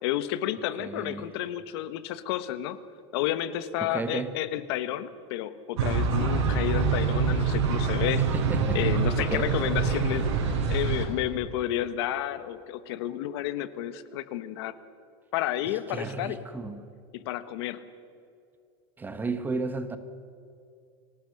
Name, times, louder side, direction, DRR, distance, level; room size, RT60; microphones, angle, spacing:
voice 1, 0.0-2.8 3.1-8.2 8.7-10.3 10.7-14.7 15.3-16.4 17.1-17.8, left 12 dB, 65° left, 13 dB, 1.3 m, -31 dB
voice 2, 0.8-1.3 3.8-4.3 8.2-8.8 9.2-9.5 15.9-16.8 19.0-20.0, right 3 dB, 15° right, 10 dB, 1.1 m, -33 dB
sound 1, 5.8-11.1, right 5 dB, 85° right, 5.2 m, -25 dB
25.0 x 18.0 x 6.5 m, 2.5 s
supercardioid pair, 150°, 14 cm